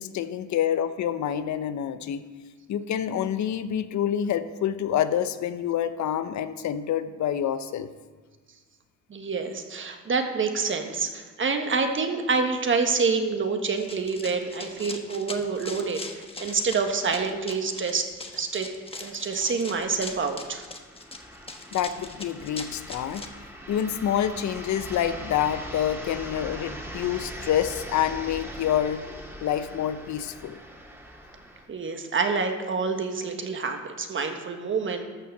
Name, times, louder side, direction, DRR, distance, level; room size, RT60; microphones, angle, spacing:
voice 1, 0.0-2.2 2.7-7.9 21.7-23.2 23.7-29.0 29.4-30.6, left 10 dB, 70° left, 12 dB, 0.8 m, -27 dB
voice 2, 9.1-18.1 18.3-18.7 19.0-20.6 31.7-35.0, right 4 dB, 40° right, 5 dB, 1.4 m, -27 dB
Run, 13.8-23.3, left 3 dB, 20° left, 1.2 m, -41 dB
sound 1, 18.0-18.1 18.8-31.7, equal, 10° right, 2.1 m, -41 dB
13.5 x 5.6 x 6.6 m, 1.5 s
cardioid pair, 90°, 30 cm